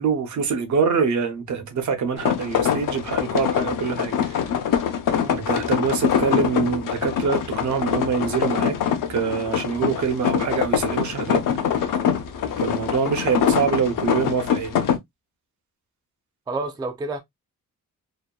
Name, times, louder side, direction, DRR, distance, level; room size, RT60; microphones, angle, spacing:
voice 1, 0.0-4.4 5.3-8.8 9.1-11.4 11.7-11.9 12.6-14.8, right 6 dB, 60° right, 0.7 m, -25 dB
sound 1, 2.2-15.0, left 8 dB, 75° left, 0.6 m, -24 dB
voice 2, 16.5-17.2, right 3 dB, 15° right, 0.3 m, -29 dB
2.7 x 2.2 x 2.2 m
wide cardioid pair, 155°, 33 cm